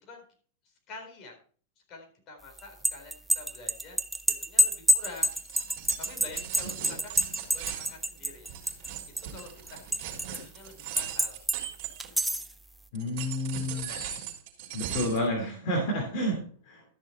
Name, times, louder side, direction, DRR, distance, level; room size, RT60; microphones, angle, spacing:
voice 1, 0.9-1.4 1.9-4.0 4.4-5.3 6.0-7.2 7.5-8.5 9.2-11.4 13.7-14.0, left 3 dB, 35° left, 2 dB, 4.0 m, -47 dB
sound 1, 2.6-8.9 9.2-10.4 11.0-11.6 12.0-12.5, equal, 5° right, 0.6 m, -26 dB
sound 2, 5.0-12.5 12.9-15.3, right 10 dB, 50° right, 3.6 m, -39 dB
voice 2, 12.9-13.9 14.7-16.8, left 1 dB, 55° left, 1 dB, 2.8 m, -30 dB
13.0 x 6.4 x 4.3 m, 0.44 s
hypercardioid pair, 130°, 0 cm